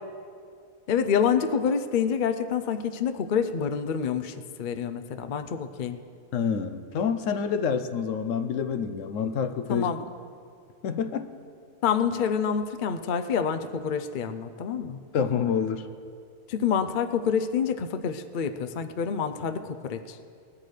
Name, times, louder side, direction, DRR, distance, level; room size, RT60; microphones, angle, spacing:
voice 1, 0.9-6.0 9.7-10.0 11.8-15.0 16.5-20.2, left 7 dB, 55° left, 9 dB, 0.6 m, -27 dB
voice 2, 6.3-9.9 10.8-11.3 15.1-15.9, left 6 dB, 70° left, 9 dB, 1.0 m, -27 dB
20.5 x 12.5 x 3.3 m, 2.3 s
omnidirectional pair, 1.4 m